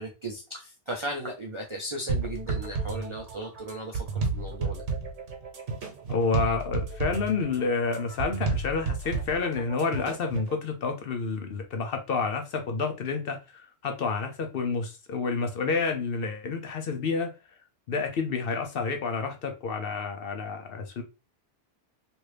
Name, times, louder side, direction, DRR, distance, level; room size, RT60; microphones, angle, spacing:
voice 1, 0.0-4.8, right 1 dB, 40° right, -2 dB, 0.4 m, -36 dB
sound 1, 2.1-10.5, right 4 dB, 90° right, 1.2 m, -32 dB
voice 2, 6.1-17.3 17.9-21.0, left 4 dB, 60° left, 5 dB, 0.7 m, -29 dB
3.0 x 2.6 x 3.1 m, 0.29 s
omnidirectional pair, 1.2 m